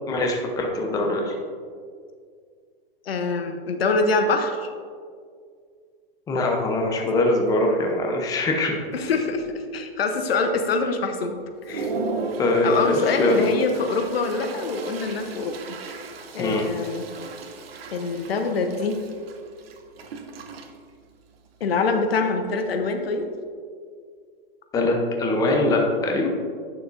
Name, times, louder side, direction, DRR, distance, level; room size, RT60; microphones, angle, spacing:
voice 1, 0.1-1.3 6.3-8.8 12.4-13.4 16.4-16.6 24.7-26.3, left 2 dB, 10° left, 1 dB, 0.7 m, -22 dB
voice 2, 3.1-4.7 8.9-9.4 9.7-11.4 11.6-11.9 12.6-15.6 15.9-16.0 16.3-17.0 17.9-19.0 21.6-23.3, left 4 dB, 85° left, 6 dB, 0.9 m, -24 dB
Toilet flush, 6.3-6.4 6.9-7.2 7.5-8.0 8.5-8.6 8.9-9.7 10.1-10.2 10.8-10.9 11.3-23.3, right 3 dB, 85° right, 0.9 m, -37 dB
9.2 x 6.6 x 2.6 m, 2.1 s
hypercardioid pair, 140°, 29 cm